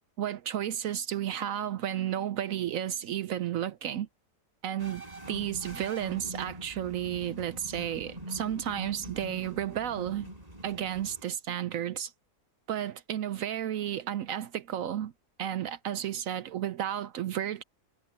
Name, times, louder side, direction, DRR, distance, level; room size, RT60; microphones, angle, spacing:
voice 1, 0.2-4.1 4.6-5.0 5.3-10.3 10.6-12.1 12.7-15.1 15.4-17.6, right 10 dB, 65° right, 0.9 m, -32 dB
sound 1, 4.8-11.2, right 1 dB, 25° right, 5.1 m, -44 dB
omnidirectional pair, 1.7 m